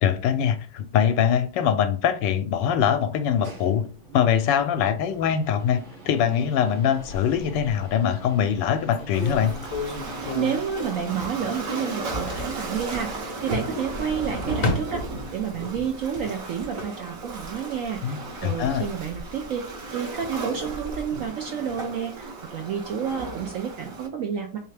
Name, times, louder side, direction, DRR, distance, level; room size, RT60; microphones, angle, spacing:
voice 1, 0.0-3.8 4.1-9.5 18.0-18.2 18.4-18.8, left 8 dB, 85° left, 1.2 m, -23 dB
sound 1, 3.0-14.7, right 3 dB, 35° right, 0.9 m, -46 dB
sound 2, 7.1-7.9 8.5-8.6 8.9-11.6 11.8-12.7 13.8-15.6 16.0-16.7, left 3 dB, 60° left, 0.9 m, -33 dB
Waves surf, 9.1-24.1, right 2 dB, 55° right, 1.1 m, -35 dB
voice 2, 10.3-15.0 15.3-19.6 19.9-24.6, right 7 dB, 70° right, 0.7 m, -30 dB
3.6 x 3.2 x 3.3 m
omnidirectional pair, 1.9 m